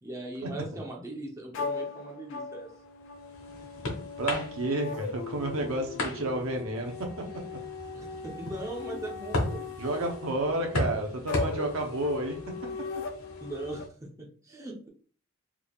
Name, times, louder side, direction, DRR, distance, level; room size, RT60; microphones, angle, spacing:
voice 1, 0.0-2.7 7.9-10.2 13.4-14.9, right 2 dB, 15° right, -1 dB, 0.6 m, -40 dB
sound 1, 1.5-13.8, left 4 dB, 60° left, 0.4 m, -39 dB
sound 2, 2.8-13.9, left 2 dB, 80° left, 1.2 m, -37 dB
voice 2, 4.2-7.4 9.8-12.4, right 1 dB, 70° right, 3 dB, 0.8 m, -31 dB
3.5 x 3.4 x 2.3 m, 0.43 s
head